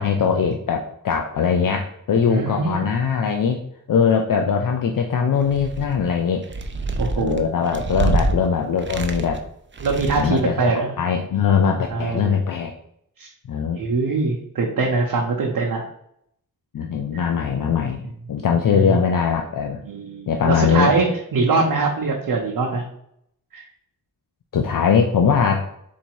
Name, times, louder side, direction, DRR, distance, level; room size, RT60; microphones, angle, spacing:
voice 1, 0.0-3.6 3.9-6.5 7.2-9.4 10.2-10.6 11.0-12.7 13.5-13.8 16.7-18.0 18.3-19.8 20.3-20.9 24.5-25.7, left 6 dB, 65° left, 3 dB, 0.5 m, -21 dB
voice 2, 2.3-2.8 7.0-7.4 9.8-10.9 11.9-12.3 13.2-13.3 13.7-15.9 17.1-17.2 18.7-19.0 19.9-22.8 23.5-23.6, right 3 dB, 75° right, -1 dB, 0.8 m, -22 dB
sound 1, 5.4-6.0 6.4-8.3 8.8-9.4 9.7-10.4, right 3 dB, 35° right, 0.6 m, -26 dB
4.1 x 2.7 x 4.5 m, 0.73 s
wide cardioid pair, 75°, 35 cm